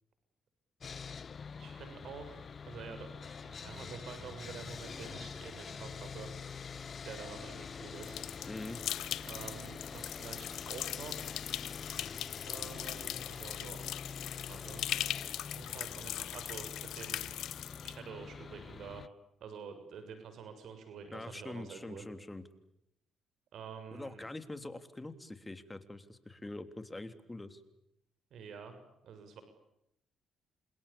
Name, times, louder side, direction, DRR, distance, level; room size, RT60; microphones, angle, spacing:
Sawing, 0.8-19.1, left 6 dB, 45° left, 1.0 m, -45 dB
voice 1, 1.6-6.3 7.0-8.2 9.2-11.4 12.4-13.9 14.5-14.8 15.5-17.3 17.8-19.0 19.4-22.0 23.5-24.2 28.3-28.7 29.0-29.4, right 6 dB, 70° right, 9 dB, 6.9 m, -48 dB
sound 1, 8.0-18.0, left 13 dB, 80° left, 1.0 m, -40 dB
voice 2, 8.4-8.8 21.1-22.4 23.9-27.6, left 2 dB, 15° left, 10 dB, 3.3 m, -44 dB
29.0 x 27.5 x 7.2 m, 0.82 s
cardioid pair, 90°, 0 cm